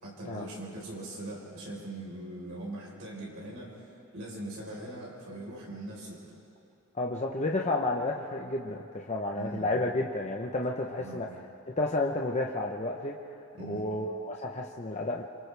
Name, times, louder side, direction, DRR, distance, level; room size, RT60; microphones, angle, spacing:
voice 1, 0.0-3.8 4.1-6.2 9.3-9.7 11.0-11.3 13.5-13.9, right 1 dB, 65° right, -4 dB, 4.4 m, -41 dB
voice 2, 7.0-11.3 11.8-13.2 13.7-15.2, left 2 dB, 30° left, 0 dB, 0.9 m, -31 dB
28.0 x 27.0 x 3.4 m, 2.8 s
head